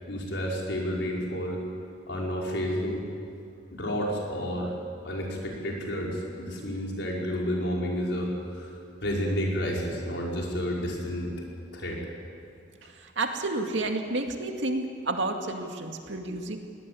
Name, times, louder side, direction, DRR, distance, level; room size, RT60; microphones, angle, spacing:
voice 1, 0.1-1.6 2.1-3.0 3.7-4.8 5.0-8.7 9.0-11.3 11.7-12.0, equal, 75° left, -2 dB, 5.2 m, -30 dB
voice 2, 12.8-16.6, right 2 dB, 80° right, 4 dB, 2.3 m, -30 dB
23.0 x 18.0 x 8.6 m, 2.4 s
head